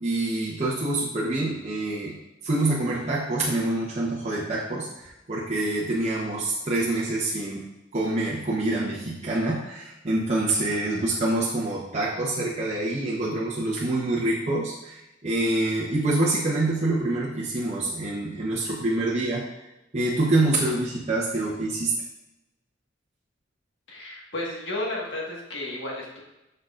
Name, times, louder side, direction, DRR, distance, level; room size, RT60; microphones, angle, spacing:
voice 1, 0.0-2.2 2.4-7.6 7.9-19.4 19.9-21.9, right 2 dB, 35° right, -6 dB, 0.9 m, -26 dB
voice 2, 23.9-26.2, left 1 dB, 70° left, -3 dB, 1.6 m, -33 dB
6.5 x 6.3 x 2.5 m, 0.95 s
head